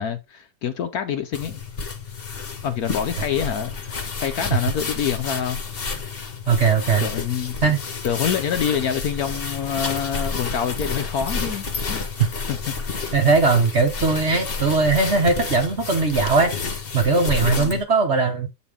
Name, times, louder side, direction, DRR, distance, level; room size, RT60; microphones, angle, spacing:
voice 1, 0.0-1.6 2.6-5.6 7.0-7.5 8.0-12.1 12.5-12.7 17.4-17.8, left 8 dB, 60° left, 1.1 m, -26 dB
sound 1, 1.3-17.8, left 4 dB, 35° left, 1.1 m, -30 dB
voice 2, 6.5-7.1 7.6-7.8 13.1-16.5 16.9-18.5, right 4 dB, 45° right, 1.0 m, -19 dB
7.9 x 4.2 x 3.5 m
omnidirectional pair, 2.0 m